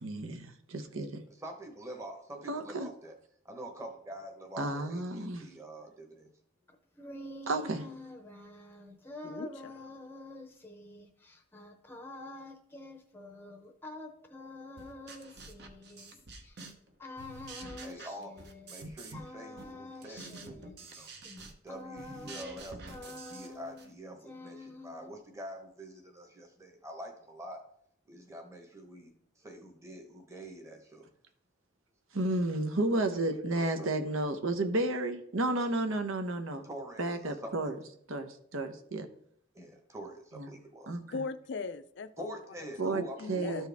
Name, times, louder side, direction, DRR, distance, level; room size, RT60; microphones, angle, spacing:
voice 1, 0.0-1.2 2.5-2.9 4.6-5.4 7.5-7.8 32.1-36.7 37.0-37.7 38.1-39.1 40.4-40.5 40.9-41.0 42.8-43.0 43.3-43.7, right 2 dB, 75° right, 7 dB, 0.9 m, -32 dB
voice 2, 1.3-3.1 3.4-6.3 17.8-21.1 21.6-27.6 28.1-31.1 33.5-33.9 36.6-37.7 39.5-41.0 42.2-43.5, right 1 dB, 15° right, 3 dB, 1.1 m, -46 dB
sound 1, 6.7-16.5 17.0-18.9 19.1-22.6 22.9-23.9 24.2-25.2, left 2 dB, 10° left, 0.7 m, -47 dB
voice 3, 9.2-10.0 41.1-42.4 42.8-43.7, left 4 dB, 55° left, 12 dB, 0.4 m, -40 dB
sound 2, 14.8-16.9 17.2-19.3 19.6-23.9, right 3 dB, 50° right, 0.9 m, -48 dB
13.0 x 4.5 x 3.5 m, 0.67 s
head